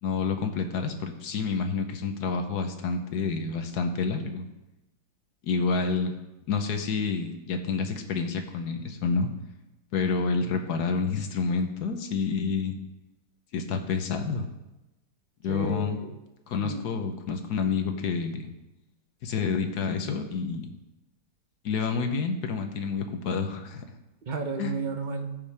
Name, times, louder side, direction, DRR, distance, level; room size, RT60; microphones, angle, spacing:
voice 1, 0.0-4.4 5.4-6.1 6.5-9.3 9.9-12.7 13.5-14.5 15.4-16.0 16.5-18.5 19.2-20.7 21.6-23.8 24.6-24.7, left 5 dB, 65° left, 6 dB, 1.4 m, -28 dB
voice 2, 15.5-16.2 16.6-16.9 24.3-25.4, right 4 dB, 50° right, 4 dB, 0.5 m, -33 dB
15.0 x 5.6 x 3.4 m, 0.98 s
omnidirectional pair, 1.9 m